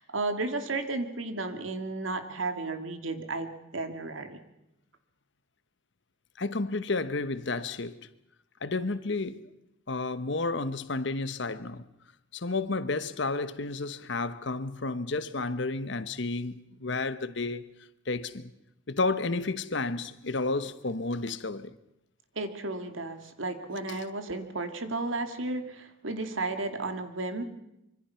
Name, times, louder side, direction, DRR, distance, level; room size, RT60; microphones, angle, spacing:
voice 1, 0.0-4.4 22.4-27.4, right 2 dB, 85° right, 2.3 m, -33 dB
voice 2, 6.4-8.1 8.6-9.4 9.9-11.8 12.3-17.6 18.1-18.5 18.9-21.7 23.8-24.1, left 3 dB, 65° left, 1.1 m, -31 dB
25.0 x 25.0 x 5.8 m
head